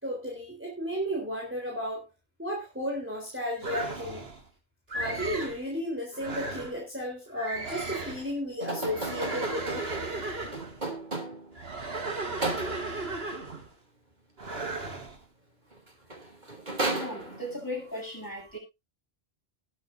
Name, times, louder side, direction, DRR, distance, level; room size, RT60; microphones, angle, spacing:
voice 1, 0.0-2.0 2.4-4.3 4.9-9.9 10.3-10.4, equal, 10° right, -1 dB, 3.8 m, -34 dB
sound 1, 3.6-4.4 4.9-5.6 6.1-6.8 7.3-8.3 8.8-10.8 11.5-13.7 14.4-15.2, right 2 dB, 70° right, 2.5 m, -35 dB
sound 2, 8.6-11.6 12.4-13.1 15.7-15.8 16.1-17.7, right 2 dB, 45° right, 3.2 m, -34 dB
voice 2, 16.9-18.6, left 1 dB, 20° left, -3 dB, 8.0 m, -37 dB
20.0 x 8.2 x 2.7 m, 0.25 s
omnidirectional pair, 1.0 m